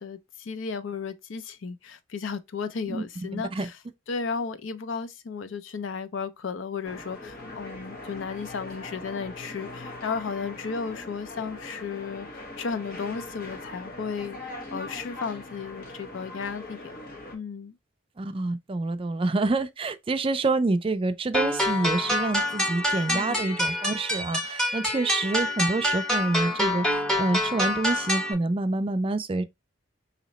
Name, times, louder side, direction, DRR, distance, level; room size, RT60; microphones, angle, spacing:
voice 1, 0.0-3.7 4.1-14.4 14.7-17.0 17.3-17.8 23.1-23.4, left 5 dB, 90° left, 0.5 m, -34 dB
voice 2, 3.3-3.7 18.2-29.4, right 2 dB, 30° right, 0.4 m, -27 dB
sound 1, 6.8-17.4, left 2 dB, 50° left, 1.2 m, -41 dB
sound 2, 21.3-28.3, left 1 dB, 5° left, 0.9 m, -27 dB
3.0 x 2.8 x 4.0 m
head